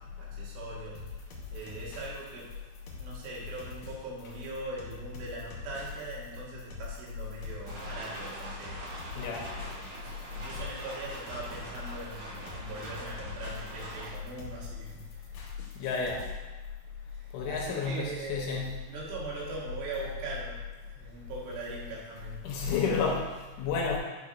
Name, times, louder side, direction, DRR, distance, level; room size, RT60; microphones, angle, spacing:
voice 1, 0.0-2.5 2.9-9.0 9.3-15.4 17.1-22.5, right 3 dB, 75° right, -5 dB, 3.7 m, -41 dB
sound 1, 0.9-16.3, left 4 dB, 65° left, 2.6 m, -46 dB
sound 2, 7.6-14.1, right 1 dB, 45° right, 3.5 m, -43 dB
voice 2, 9.2-9.5 15.8-16.2 17.3-18.9 22.4-24.0, left 5 dB, 80° left, -1 dB, 3.0 m, -31 dB
10.5 x 5.8 x 2.4 m, 1.2 s
omnidirectional pair, 5.8 m